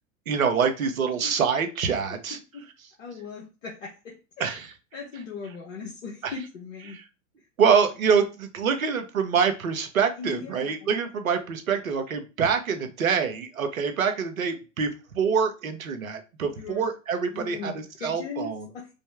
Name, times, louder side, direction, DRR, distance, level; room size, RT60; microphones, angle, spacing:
voice 1, 0.3-2.4 4.4-4.7 6.2-6.3 6.9-7.0 7.6-18.7, right 6 dB, 75° right, 6 dB, 1.0 m, -25 dB
voice 2, 2.1-2.6 3.0-4.5 4.9-7.0 10.2-11.0 16.6-16.9 17.3-18.9, left 5 dB, 65° left, -1 dB, 1.2 m, -39 dB
5.3 x 2.1 x 3.4 m, 0.31 s
figure-of-eight pair, 100°, 41 cm